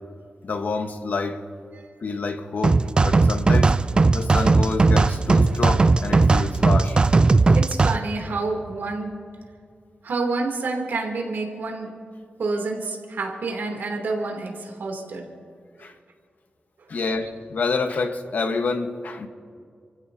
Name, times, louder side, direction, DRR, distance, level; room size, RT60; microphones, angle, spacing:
voice 1, 0.4-1.4 2.0-3.8 4.1-7.0 15.8-15.9 16.9-19.3, left 4 dB, 60° left, 6 dB, 1.3 m, -28 dB
sound 1, 2.6-8.0, right 3 dB, 30° right, 0.4 m, -18 dB
voice 2, 7.5-9.1 10.0-11.9 12.4-15.2, right 3 dB, 75° right, 1 dB, 3.0 m, -28 dB
30.0 x 15.5 x 2.8 m, 2.3 s
wide cardioid pair, 155°, 3 cm